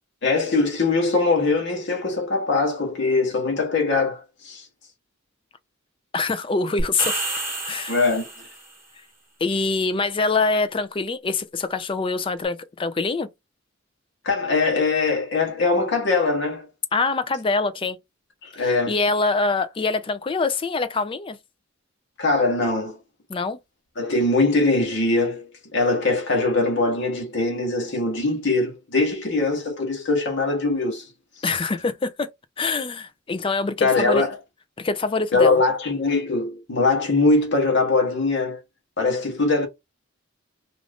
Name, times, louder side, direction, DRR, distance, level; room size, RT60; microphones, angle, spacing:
voice 1, 0.2-4.7 7.9-8.3 14.2-16.7 18.4-19.0 22.2-23.0 24.0-31.1 33.8-34.3 35.3-38.6 39.0-39.7, left 3 dB, 60° left, 1.0 m, -22 dB
voice 2, 6.1-7.2 7.7-8.0 9.4-13.3 16.9-18.0 18.6-21.4 23.3-23.6 31.4-32.3 32.6-34.3 34.8-35.6, left 3 dB, 25° left, 0.4 m, -24 dB
sound 1, 6.8-8.7, right 2 dB, 10° right, 1.1 m, -29 dB
2.6 x 2.4 x 3.3 m
head